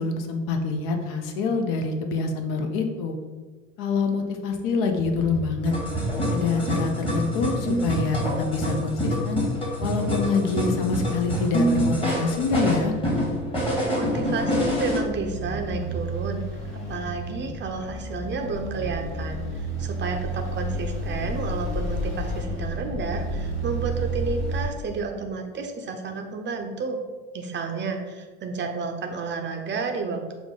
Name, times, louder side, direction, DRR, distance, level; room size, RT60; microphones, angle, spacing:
voice 1, 0.0-3.2 3.8-5.7 6.3-9.4 9.8-12.9, left 4 dB, 55° left, 4 dB, 0.7 m, -26 dB
sound 1, 4.9-24.7, right 1 dB, 80° left, 1.2 m, -33 dB
sound 2, 5.6-15.0, equal, 15° left, 1.3 m, -26 dB
voice 2, 14.0-16.4 16.7-27.0 27.3-30.3, right 4 dB, 30° right, 4 dB, 0.6 m, -31 dB
5.8 x 2.1 x 3.7 m, 1.4 s
hypercardioid pair, 70°, 37 cm